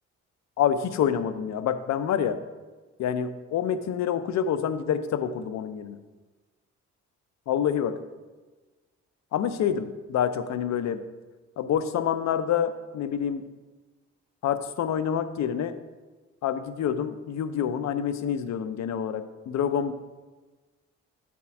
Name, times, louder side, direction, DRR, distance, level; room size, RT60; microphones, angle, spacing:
voice 1, 0.6-2.4 3.0-6.0 7.5-8.0 9.3-11.0 11.6-13.4 14.4-15.7 16.4-19.9, left 8 dB, 65° left, 11 dB, 0.6 m, -27 dB
7.2 x 4.3 x 5.9 m, 1.3 s
cardioid pair, 90°, 30 cm